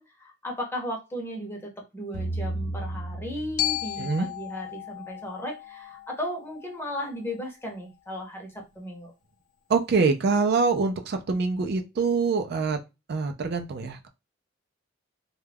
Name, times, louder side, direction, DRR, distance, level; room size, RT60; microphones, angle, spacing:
voice 1, 0.0-9.1, equal, 10° left, 0.7 m, -35 dB
sound 1, 2.1-4.4, right 2 dB, 65° left, 0.8 m, -34 dB
Glockenspiel, 3.6-7.7, left 14 dB, 45° left, 0.3 m, -35 dB
voice 2, 9.7-12.8 13.1-14.1, right 4 dB, 55° right, 0.4 m, -25 dB
2.3 x 2.2 x 3.3 m
head